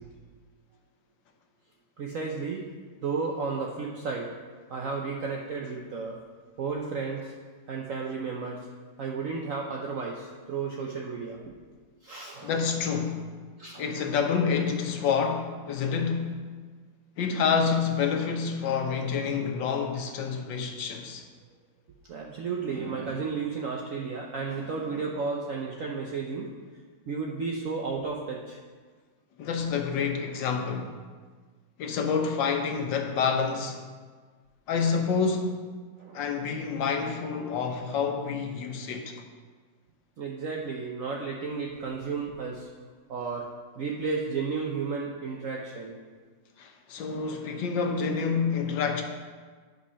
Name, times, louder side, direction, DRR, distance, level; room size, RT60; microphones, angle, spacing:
voice 1, 2.0-2.7 3.0-4.3 4.7-6.2 6.6-7.3 7.7-8.6 9.0-11.5 12.0-12.5 13.6-13.9 22.1-26.5 27.1-28.6 36.0-36.3 40.2-42.7 43.1-43.5 43.8-46.0, right 4 dB, 55° right, 1.0 m, -33 dB
voice 2, 12.4-13.3 13.8-16.4 17.2-21.2 29.4-30.9 31.8-33.8 34.7-35.6 36.1-39.1 46.6-49.0, left 6 dB, 90° left, 1.7 m, -28 dB
9.9 x 5.4 x 5.6 m
omnidirectional pair, 1.9 m